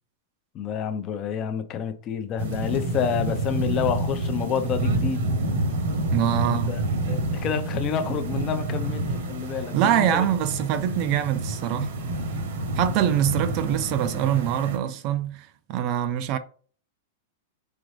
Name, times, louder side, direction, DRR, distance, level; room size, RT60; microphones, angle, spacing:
voice 1, 0.5-5.3 6.4-6.8 7.1-10.3, left 7 dB, 30° left, 0.5 m, -29 dB
sound 1, 2.4-14.8, right 1 dB, 70° right, 1.1 m, -28 dB
voice 2, 6.1-6.8 9.7-11.9 12.8-16.4, right 10 dB, 40° right, 0.4 m, -24 dB
3.9 x 3.8 x 3.2 m
supercardioid pair, 155°, 0 cm